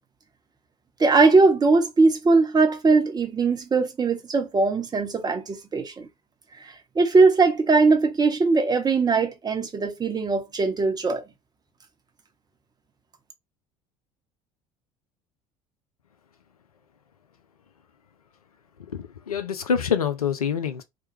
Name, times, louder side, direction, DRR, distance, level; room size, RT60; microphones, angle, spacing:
voice 1, 1.0-6.1 6.6-11.2, right 3 dB, 20° right, 0.8 m, -20 dB
voice 2, 18.9-20.8, left 7 dB, 85° left, 0.4 m, -26 dB
3.0 x 2.2 x 3.1 m
figure-of-eight pair, 60°, 19 cm